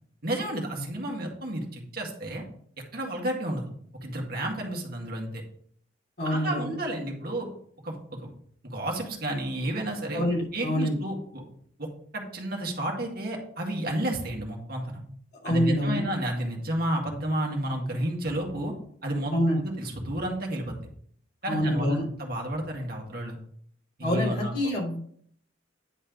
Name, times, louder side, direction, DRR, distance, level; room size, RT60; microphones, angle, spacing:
voice 1, 0.2-2.4 2.9-5.3 6.2-7.5 7.8-8.3 8.6-11.4 11.8-11.9 12.1-15.0 15.4-18.7 19.0-19.3 19.6-20.8 21.4-23.4 24.0-24.5, right 1 dB, 50° right, 1 dB, 1.9 m, -31 dB
voice 2, 6.2-6.7 10.1-11.0 15.4-16.0 19.3-19.6 21.5-22.0 24.0-25.0, equal, 55° left, -4 dB, 3.1 m, -26 dB
10.0 x 4.3 x 5.2 m, 0.62 s
head